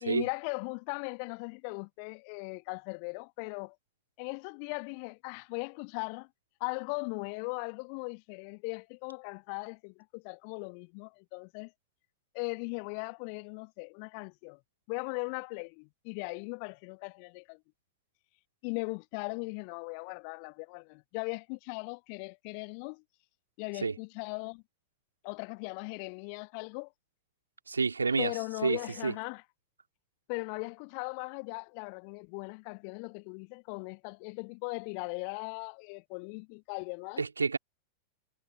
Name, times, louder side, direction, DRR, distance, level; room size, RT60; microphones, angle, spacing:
voice 1, 0.0-3.7 4.2-6.3 6.6-11.7 12.3-14.6 14.9-17.6 18.6-23.0 23.6-24.6 25.2-26.9 28.2-29.4 30.3-37.2, left 40 dB or more, 45° left, 1.5 m, -38 dB
voice 2, 27.7-28.3 28.6-29.1 37.2-37.6, right 4 dB, 75° right, 2.7 m, -29 dB
figure-of-eight pair, 90°, 0 cm